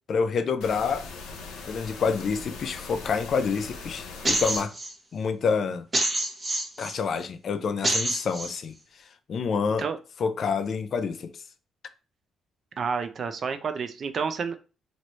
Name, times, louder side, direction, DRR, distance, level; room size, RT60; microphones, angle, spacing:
voice 1, 0.1-1.0 1.6-4.7 5.1-5.9 6.8-8.8 9.3-9.8 10.2-11.3, left 5 dB, 55° left, 0.4 m, -27 dB
sound 1, 0.6-4.6, left 4 dB, 90° left, 0.7 m, -40 dB
sound 2, 4.2-4.9 5.9-6.9 7.8-8.5, right 2 dB, 30° right, 1.0 m, -26 dB
voice 2, 12.8-14.6, right 5 dB, 50° right, 0.4 m, -29 dB
3.0 x 2.6 x 3.0 m
cardioid pair, 90°, 0 cm